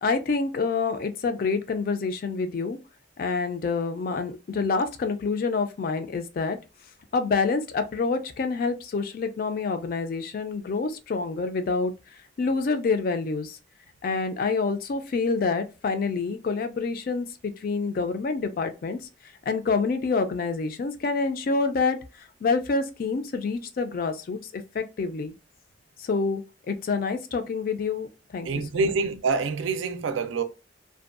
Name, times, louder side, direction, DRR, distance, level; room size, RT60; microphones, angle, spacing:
voice 1, 0.0-2.8 3.2-6.6 7.1-11.9 12.4-13.6 14.0-19.0 19.5-25.3 26.0-26.4 26.7-28.5 28.7-28.8, left 4 dB, 50° left, 0.3 m, -27 dB
voice 2, 28.4-30.4, right 4 dB, 90° right, 0.4 m, -26 dB
2.5 x 2.2 x 2.4 m
head